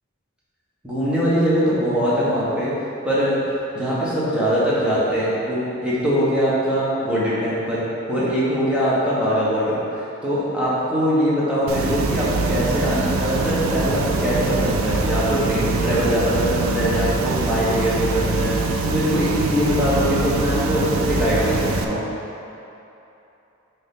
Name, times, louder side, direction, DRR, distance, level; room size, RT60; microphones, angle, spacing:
voice 1, 0.8-2.7 3.0-3.4 3.7-22.1, equal, 5° right, -10 dB, 1.4 m, -22 dB
sound 1, 11.7-21.8, right 3 dB, 75° right, 0.5 m, -23 dB
6.4 x 4.2 x 3.9 m, 2.9 s
head